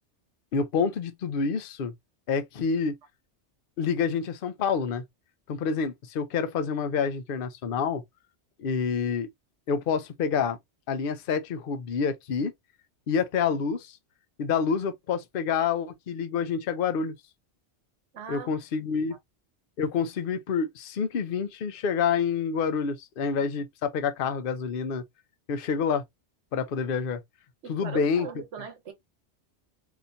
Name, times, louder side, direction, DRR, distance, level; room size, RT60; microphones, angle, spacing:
voice 1, 0.5-1.9 2.3-2.9 3.8-5.0 5.5-8.0 8.6-9.3 9.7-10.6 10.9-12.5 13.1-14.0 14.4-17.1 18.3-19.2 19.8-25.0 25.5-26.0 26.5-27.2 27.7-28.3, left 6 dB, 55° left, 0.8 m, -27 dB
voice 2, 18.1-18.9 27.6-28.9, right 6 dB, 90° right, 1.3 m, -40 dB
4.0 x 2.9 x 2.5 m
omnidirectional pair, 1.2 m